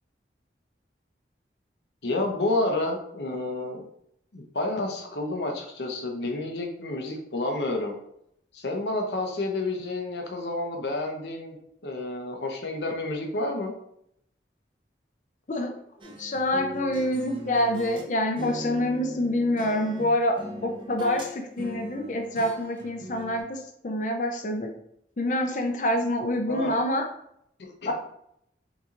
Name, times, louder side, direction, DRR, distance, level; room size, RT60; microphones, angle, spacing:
voice 1, 2.0-3.8 4.3-7.9 8.5-11.6 11.8-13.7 26.5-26.8 27.6-27.9, left 2 dB, 80° left, 2 dB, 0.8 m, -30 dB
voice 2, 16.0-20.4 20.6-24.7 25.2-27.0 27.8-27.9, left 1 dB, 45° left, 4 dB, 0.5 m, -26 dB
sound 1, 16.0-18.1 18.4-21.3 21.6-23.4, equal, 30° right, 0.5 m, -39 dB
5.9 x 2.7 x 2.5 m, 0.74 s
head